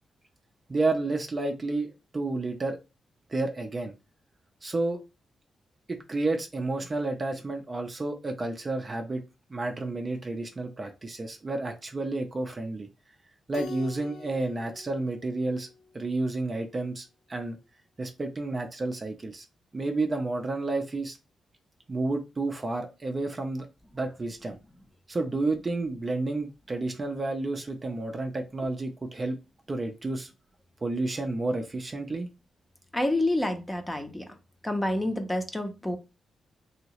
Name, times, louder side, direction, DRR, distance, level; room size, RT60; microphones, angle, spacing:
voice 1, 0.7-2.8 3.3-3.9 4.6-5.0 5.9-9.2 9.5-12.9 13.5-15.7 15.9-17.6 18.0-19.4 19.7-21.2 21.9-23.7 23.9-24.6 25.1-29.4 29.7-30.3 30.8-32.3, right 2 dB, 30° right, 4 dB, 0.5 m, -30 dB
Keyboard (musical), 13.5-16.2, left 4 dB, 85° left, 0.5 m, -45 dB
voice 2, 32.9-34.3 34.6-36.0, left 1 dB, 10° left, 5 dB, 0.6 m, -28 dB
2.9 x 2.8 x 2.9 m, 0.28 s
wide cardioid pair, 125°, 0 cm